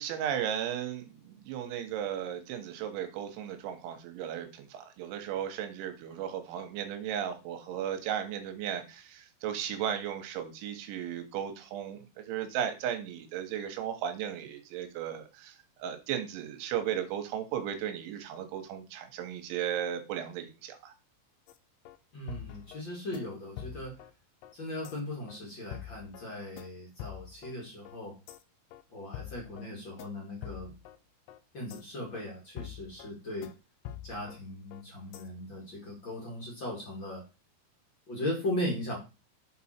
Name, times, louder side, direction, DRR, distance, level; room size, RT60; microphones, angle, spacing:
voice 1, 0.0-20.9, right 9 dB, 85° right, 7 dB, 3.4 m, -35 dB
sound 1, 21.5-21.6 21.9-22.0 22.3-22.8 23.1-23.3 23.6-24.1 24.4-24.5 24.9-25.0 25.3-25.4 25.7-26.3 26.6-26.7 27.0-27.5 27.9-28.0 28.3-28.4 28.7-28.8 29.1-29.7 30.0-30.1 30.4-31.0 31.3-31.4 31.7-31.8 32.1-32.2 32.6-33.1 33.4-33.5 33.9-34.4 34.7-34.8 35.1-35.3, left 11 dB, 85° left, 2.9 m, -45 dB
voice 2, 22.1-23.9 24.5-28.1 28.9-30.7 31.5-33.5 34.0-37.2 38.1-39.0, left 1 dB, 55° left, -2 dB, 1.3 m, -38 dB
7.6 x 4.4 x 4.3 m, 0.29 s
omnidirectional pair, 5.3 m